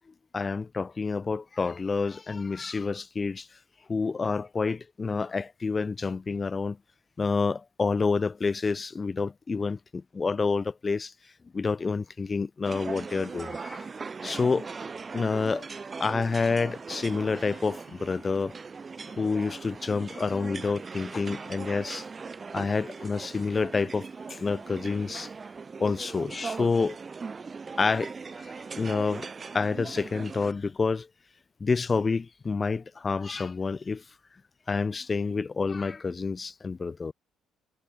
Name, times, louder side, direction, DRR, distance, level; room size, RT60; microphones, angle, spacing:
voice 1, 0.3-3.5 3.9-6.8 7.2-11.1 11.5-13.9 14.2-14.7 15.1-15.7 16.0-18.6 19.2-22.1 22.5-25.3 25.8-27.0 27.8-28.1 28.4-29.3 29.5-31.1 31.6-34.0 34.7-37.1, left 4 dB, 30° left, 0.4 m, -28 dB
sound 1, 12.7-30.5, right 4 dB, 30° right, 0.5 m, -40 dB
cardioid pair, 100°, 0 cm